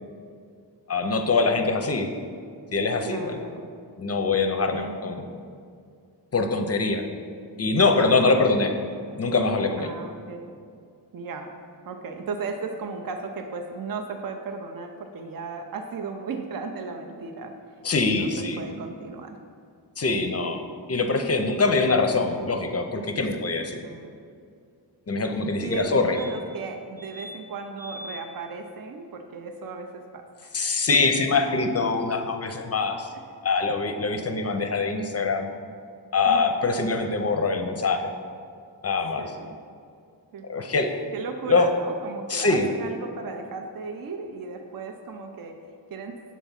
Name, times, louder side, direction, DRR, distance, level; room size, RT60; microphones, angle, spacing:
voice 1, 0.9-2.1 2.7-3.5 4.0-5.3 6.3-7.0 7.6-8.7 9.2-9.9 17.8-18.6 20.0-20.6 20.9-23.8 25.1-26.2 30.5-33.1 33.4-35.5 36.1-38.1 38.8-39.3 40.5-40.9 41.5-41.7 42.3-42.6, left 3 dB, 35° left, 5 dB, 0.5 m, -23 dB
voice 2, 3.0-3.7 4.7-5.3 7.9-8.6 9.8-10.5 11.1-11.5 11.9-17.6 18.0-19.4 23.1-23.3 23.8-24.2 25.6-30.6 30.9-31.0 33.1-33.2 33.9-34.5 36.3-36.7 39.2-39.6 40.3-40.8 41.1-45.6 45.9-46.2, right 4 dB, 55° right, 5 dB, 0.5 m, -36 dB
sound 1, 26.1-26.6 27.0-27.4 27.8-28.2 30.6-30.7 30.9-31.0, left 1 dB, 80° right, 1.4 m, -41 dB
7.2 x 3.5 x 5.6 m, 2.3 s
wide cardioid pair, 100°, 43 cm